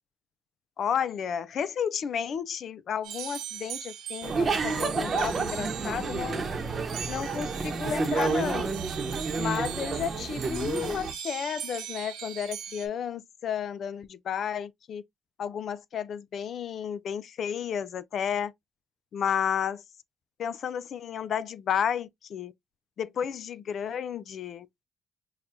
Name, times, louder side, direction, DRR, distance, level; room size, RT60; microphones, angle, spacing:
voice 1, 0.8-6.5 7.1-8.7 9.4-15.0 15.4-18.5 19.1-19.8 20.4-22.5 23.0-24.7, left 8 dB, 60° left, 0.4 m, -32 dB
sound 1, 3.0-12.9, right 9 dB, 85° right, 1.0 m, -40 dB
sound 2, 4.2-11.1, right 4 dB, 40° right, 0.9 m, -30 dB
5.6 x 2.3 x 2.5 m
cardioid pair, 90°, 0 cm